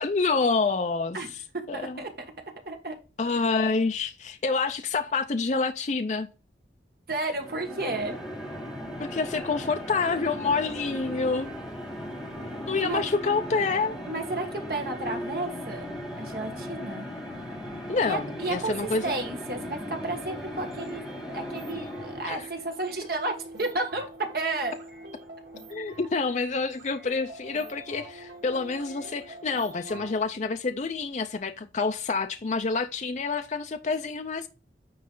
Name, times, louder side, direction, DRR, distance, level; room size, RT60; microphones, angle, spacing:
voice 1, 0.0-1.2 1.7-2.0 3.2-6.3 9.0-11.5 12.7-14.0 17.9-19.1 22.2-22.5 25.7-34.5, left 4 dB, 40° left, 0.4 m, -27 dB
voice 2, 1.5-2.1 2.6-3.0 7.1-8.1 12.8-13.1 14.1-15.9 16.2-17.1 18.1-18.7 19.0-21.0 21.3-24.7, right 2 dB, 55° right, 1.5 m, -32 dB
sound 1, 7.3-22.6, equal, ahead, 1.8 m, -37 dB
sound 2, 20.0-30.2, right 2 dB, 90° right, 2.5 m, -46 dB
9.4 x 3.2 x 3.8 m
head